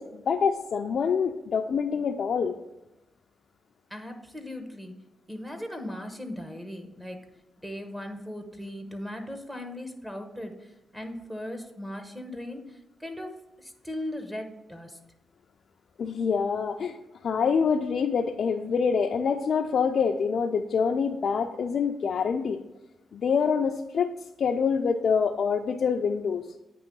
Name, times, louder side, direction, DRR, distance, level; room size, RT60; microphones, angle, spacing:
voice 1, 0.0-2.5 16.0-17.0 17.2-22.6 23.1-24.1 24.4-26.5, left 6 dB, 65° left, 3 dB, 0.4 m, -26 dB
voice 2, 3.9-5.0 5.3-7.2 7.6-15.0, left 1 dB, 10° right, 4 dB, 1.0 m, -38 dB
8.9 x 3.0 x 5.3 m, 0.97 s
cardioid pair, 80°, 0 cm